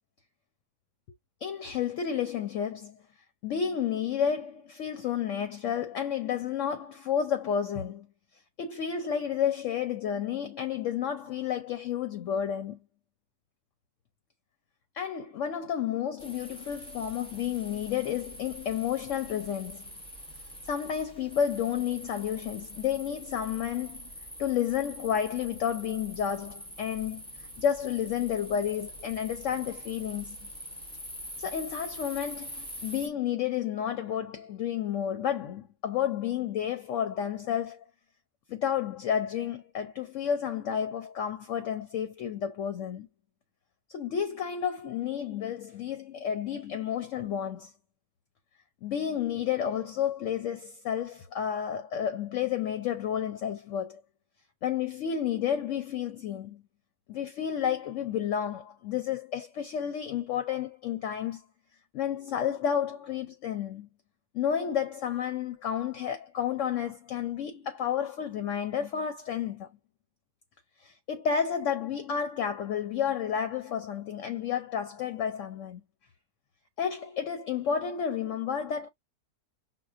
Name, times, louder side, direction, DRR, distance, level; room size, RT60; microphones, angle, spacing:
voice 1, 1.4-3.0 3.4-8.1 8.6-12.8 14.9-19.8 20.7-24.1 24.4-27.2 27.6-30.5 31.4-37.9 38.5-43.1 43.9-47.7 48.8-54.0 54.6-56.6 57.1-61.4 61.9-63.9 64.3-69.7 70.8-75.8 76.8-78.9, left 8 dB, 65° left, 0.9 m, -31 dB
sound 1, 16.2-33.1, equal, 10° left, 0.4 m, -44 dB
6.0 x 2.2 x 2.4 m
omnidirectional pair, 1.7 m